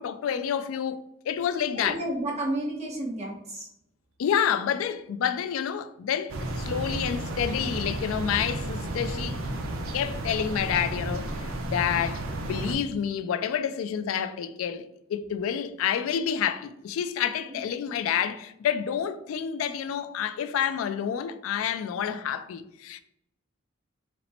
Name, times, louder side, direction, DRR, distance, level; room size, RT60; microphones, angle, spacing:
voice 1, 0.0-2.0 4.2-9.4 9.9-23.0, left 8 dB, 75° left, 0.3 m, -29 dB
voice 2, 1.7-3.7 17.5-17.6, right 1 dB, 30° right, 1.0 m, -31 dB
sound 1, 6.3-12.7, right 1 dB, 80° right, 0.6 m, -32 dB
4.2 x 2.1 x 4.1 m
head